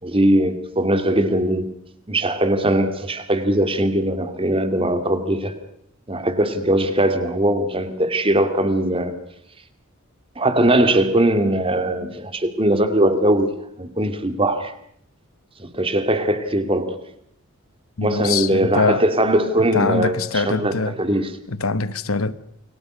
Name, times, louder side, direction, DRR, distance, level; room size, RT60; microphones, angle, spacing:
voice 1, 0.0-1.7 2.1-5.5 6.1-9.1 10.4-13.5 13.8-14.7 15.6-17.0 18.0-21.3, right 1 dB, 25° right, 2.8 m, -20 dB
voice 2, 18.0-19.0 19.7-21.0 21.5-22.3, left 4 dB, 75° left, 1.2 m, -23 dB
29.0 x 23.5 x 6.5 m
head